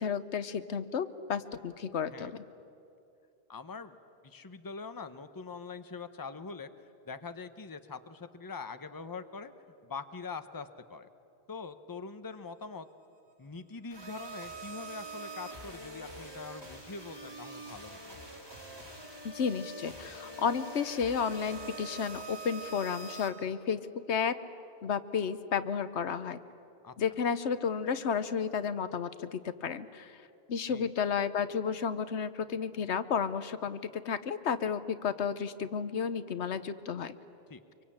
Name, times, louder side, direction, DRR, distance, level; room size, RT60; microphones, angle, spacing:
voice 1, 0.0-2.4 19.2-24.3 24.8-26.4 27.0-30.2 30.5-37.1, left 6 dB, 80° left, 12 dB, 1.2 m, -32 dB
voice 2, 3.5-4.0 4.2-6.7 7.1-9.5 9.8-11.1 11.5-12.9 13.4-18.2 26.8-26.9 30.7-30.9 37.5-37.6, left 4 dB, 20° left, 10 dB, 0.9 m, -43 dB
sound 1, 13.9-23.3, right 2 dB, 20° right, 3.1 m, -44 dB
25.0 x 24.0 x 8.7 m, 2.6 s
omnidirectional pair, 1.1 m